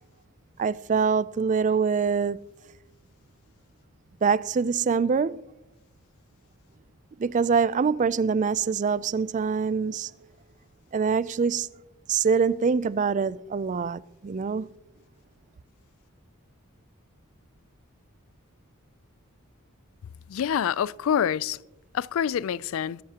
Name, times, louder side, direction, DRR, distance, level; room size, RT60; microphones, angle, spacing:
voice 1, 0.6-2.4 4.2-5.5 7.2-10.1 10.9-11.7 12.1-14.7, right 5 dB, 35° right, 0.3 m, -24 dB
voice 2, 20.3-21.6 21.9-23.0, left 8 dB, 65° left, 0.3 m, -26 dB
22.0 x 12.5 x 2.9 m
head